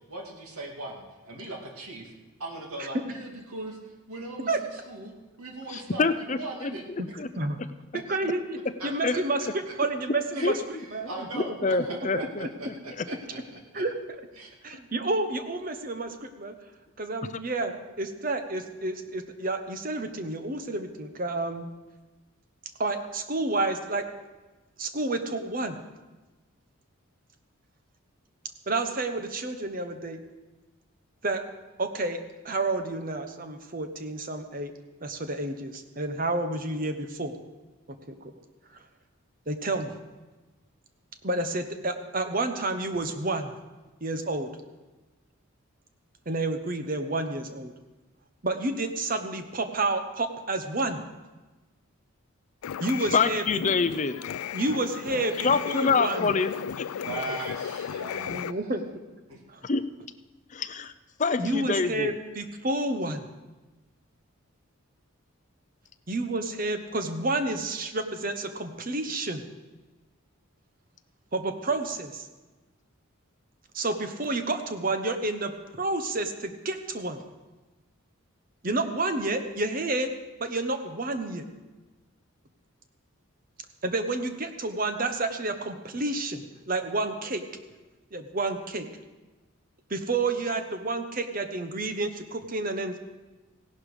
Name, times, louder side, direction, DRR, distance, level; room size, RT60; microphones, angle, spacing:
voice 1, 0.1-2.1 2.4-6.8 8.8-9.2 9.7-9.8 10.3-10.5 11.0-13.8 14.4-14.5 57.0-58.7 59.3-59.4, right 2 dB, 85° right, 0 dB, 2.4 m, -39 dB
voice 2, 5.7-7.3 9.0-9.1 10.4-10.5 11.6-13.0 17.3-17.4 53.1-54.2 55.4-56.9 59.6-59.8 60.5-60.9 61.2-62.1, left 4 dB, 35° left, 11 dB, 0.5 m, -26 dB
voice 3, 8.1-10.6 10.9-11.4 12.1-12.3 13.7-13.9 14.6-16.5 17.0-21.7 22.8-24.0 24.8-25.8 28.7-30.2 31.2-31.4 31.8-34.7 35.0-37.3 37.9-38.3 38.7-38.8 39.5-40.0 41.2-43.6 44.0-44.5 46.3-47.7 48.4-51.0 52.8-53.6 54.5-56.3 58.2-58.8 59.5-59.6 61.4-63.3 66.1-69.4 71.3-72.3 73.7-77.2 78.6-80.1 80.4-81.5 83.8-87.4 88.1-88.9 89.9-93.0, right 2 dB, 40° right, 7 dB, 1.0 m, -30 dB
sound 1, 52.6-58.5, left 8 dB, 85° left, 0.4 m, -35 dB
16.5 x 11.5 x 5.0 m, 1.2 s
head